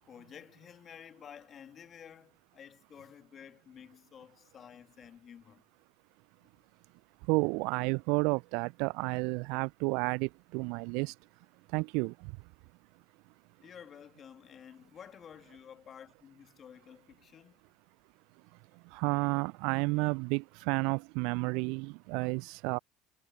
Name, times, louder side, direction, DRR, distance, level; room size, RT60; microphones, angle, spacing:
voice 1, 0.0-5.6 6.4-6.5 13.6-17.7, left 8 dB, 40° left, 1.9 m, -52 dB
voice 2, 7.3-11.1 11.7-12.3 18.9-22.8, right 30 dB, 60° right, 0.5 m, -31 dB
figure-of-eight pair, 65°, 0 cm